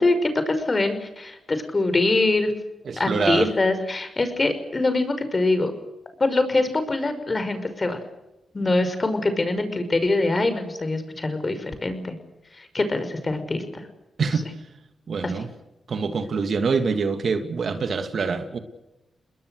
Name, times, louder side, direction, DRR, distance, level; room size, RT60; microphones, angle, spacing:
voice 1, 0.0-2.5 3.0-5.7 6.2-8.0 8.5-12.2 12.6-13.8 14.2-14.3 15.2-15.3, left 2 dB, 35° left, 9 dB, 5.8 m, -23 dB
voice 2, 2.9-3.5 14.2-14.5 15.1-15.5 15.9-18.6, right 5 dB, 65° right, 8 dB, 2.7 m, -25 dB
29.5 x 21.0 x 6.6 m, 0.96 s
cardioid pair, 55°, 0 cm